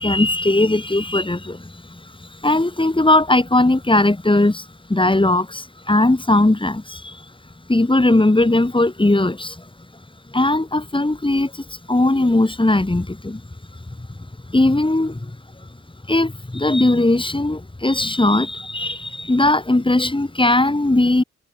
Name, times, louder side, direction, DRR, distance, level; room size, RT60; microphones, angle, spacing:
voice 1, 0.0-7.3 7.7-9.6 10.3-13.4 14.0-14.1 14.5-15.3 16.1-21.2, left 2 dB, 15° left, 5.2 m, -19 dB
hypercardioid pair, 45°, 33 cm